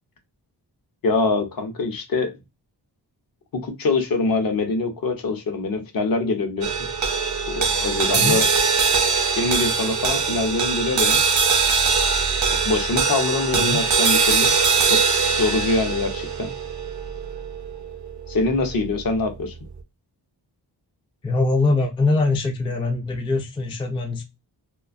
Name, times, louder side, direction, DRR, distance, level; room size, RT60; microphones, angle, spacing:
voice 1, 1.0-2.3 3.5-6.8 7.5-8.4 9.3-11.2 12.6-14.5 14.9-15.0 15.4-16.5 18.3-19.5, left 3 dB, 55° left, 0.6 m, -24 dB
sound 1, 6.6-19.1, right 5 dB, 45° right, 0.5 m, -22 dB
voice 2, 8.1-8.4 13.5-13.8 21.2-24.2, left 3 dB, 15° left, 0.3 m, -23 dB
2.4 x 2.2 x 2.4 m
wide cardioid pair, 150°, 42 cm